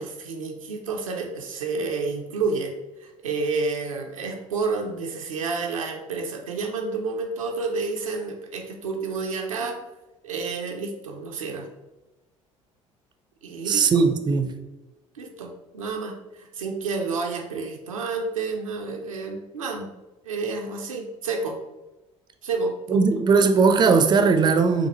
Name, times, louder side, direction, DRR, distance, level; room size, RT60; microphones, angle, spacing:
voice 1, 0.0-2.7 3.0-9.8 10.2-11.7 13.4-14.0 15.1-19.9 20.2-21.6 22.4-23.1, right 4 dB, 80° right, 0.5 m, -30 dB
voice 2, 13.7-14.6 22.9-24.9, right 4 dB, 25° right, 0.4 m, -19 dB
5.8 x 2.2 x 3.0 m
figure-of-eight pair, 55°, 17 cm